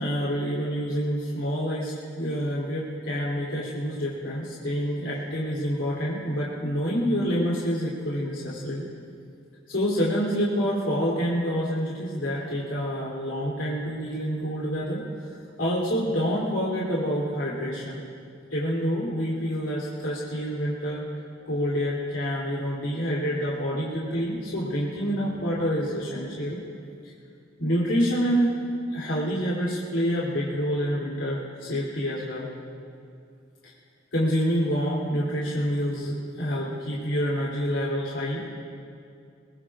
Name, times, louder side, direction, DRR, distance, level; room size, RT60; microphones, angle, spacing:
voice 1, 0.0-8.9 9.7-15.0 15.6-18.0 18.5-21.0 21.4-26.6 27.0-27.1 27.6-28.6 28.9-32.5 33.6-33.7 34.1-38.5, equal, 80° left, -6 dB, 3.3 m, -27 dB
22.5 x 21.5 x 2.5 m, 2.4 s
head